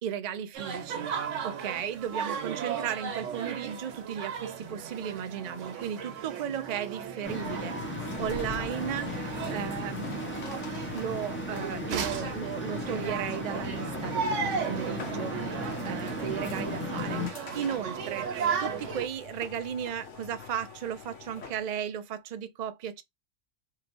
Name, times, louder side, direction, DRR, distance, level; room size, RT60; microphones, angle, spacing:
voice 1, 0.0-10.4 10.9-18.3 18.6-23.0, right 9 dB, 55° right, 0.4 m, -35 dB
sound 1, 0.5-19.1, right 6 dB, 85° right, 1.1 m, -36 dB
sound 2, 7.2-17.3, left 1 dB, 10° left, 0.6 m, -36 dB
sound 3, 7.9-21.7, left 5 dB, 80° left, 1.2 m, -46 dB
3.1 x 2.9 x 2.5 m
omnidirectional pair, 1.3 m